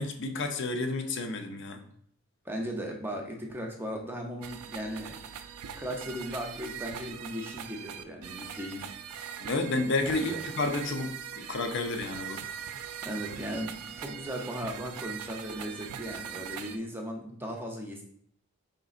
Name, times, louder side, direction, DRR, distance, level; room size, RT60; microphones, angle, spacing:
voice 1, 0.0-1.8 9.4-12.4, left 2 dB, 55° left, 6 dB, 0.5 m, -31 dB
voice 2, 2.4-5.2 5.8-8.9 10.1-10.4 13.0-18.0, equal, 10° right, 1 dB, 0.6 m, -37 dB
sound 1, 4.4-16.8, right 8 dB, 85° right, 0.4 m, -41 dB
5.2 x 3.8 x 2.4 m, 0.65 s
head